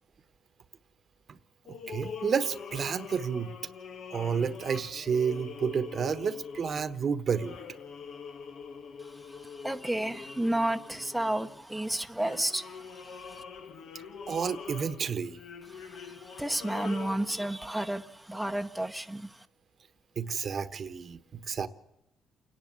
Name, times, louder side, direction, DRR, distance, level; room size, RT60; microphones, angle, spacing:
sound 1, 1.6-11.7 12.2-17.5, left 6 dB, 70° left, 1.7 m, -44 dB
voice 1, 1.9-3.5 4.1-7.6 14.3-15.4 20.2-21.2 21.5-21.7, right 6 dB, 50° right, 1.2 m, -30 dB
voice 2, 9.0-13.4 15.7-19.5, right 1 dB, 5° right, 1.0 m, -32 dB
29.0 x 11.0 x 8.2 m
cardioid pair, 90°, 0 cm